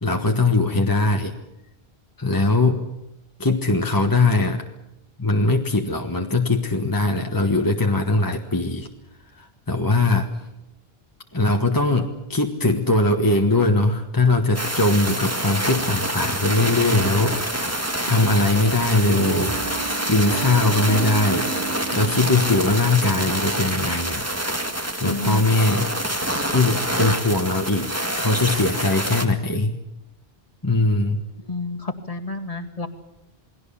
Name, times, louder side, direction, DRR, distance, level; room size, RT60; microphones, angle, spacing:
voice 1, 0.0-1.3 2.2-2.8 3.4-4.6 5.2-8.9 9.4-10.3 11.3-17.8 18.0-19.6 20.1-21.5 21.9-24.3 25.0-25.9 26.5-29.8 30.6-31.2, left 2 dB, 20° left, 3 dB, 1.5 m, -21 dB
sound 1, 14.5-29.3, right 1 dB, 15° right, 1.9 m, -26 dB
sound 2, 16.6-17.6 18.1-23.3, right 4 dB, 75° right, 4.0 m, -33 dB
voice 2, 25.0-25.4 31.5-32.9, left 3 dB, 35° left, 4 dB, 2.1 m, -30 dB
28.5 x 20.0 x 7.1 m, 0.89 s
omnidirectional pair, 1.0 m